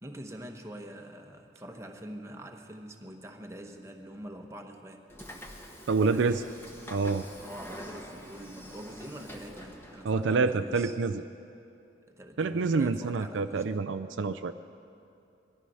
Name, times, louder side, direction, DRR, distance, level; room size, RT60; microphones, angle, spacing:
voice 1, 0.0-5.0 6.0-6.5 7.4-10.9 12.1-13.8, right 1 dB, 15° right, 3 dB, 1.0 m, -44 dB
Train / Sliding door, 5.1-10.2, equal, 10° left, 1.1 m, -46 dB
voice 2, 5.9-6.3 6.9-7.2 10.0-11.2 12.4-14.5, right 4 dB, 70° right, 10 dB, 0.4 m, -27 dB
19.5 x 13.0 x 5.5 m, 2.7 s
head